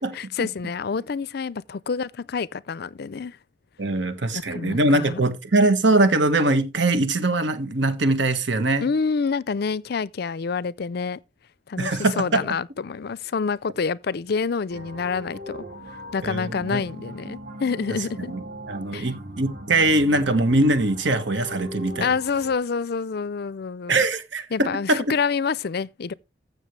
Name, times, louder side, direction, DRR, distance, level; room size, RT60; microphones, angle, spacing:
voice 1, 0.1-3.4 4.3-5.2 8.8-11.2 11.7-15.6 16.1-18.3 18.9-19.1 22.0-24.0 24.5-26.1, left 5 dB, 55° left, 0.5 m, -27 dB
voice 2, 3.8-8.9 11.8-12.4 16.2-16.8 18.3-18.4 18.7-22.1 23.9-25.1, right 2 dB, 70° right, 1.6 m, -22 dB
sound 1, 14.7-22.5, equal, 50° right, 2.6 m, -39 dB
15.0 x 6.6 x 3.2 m
head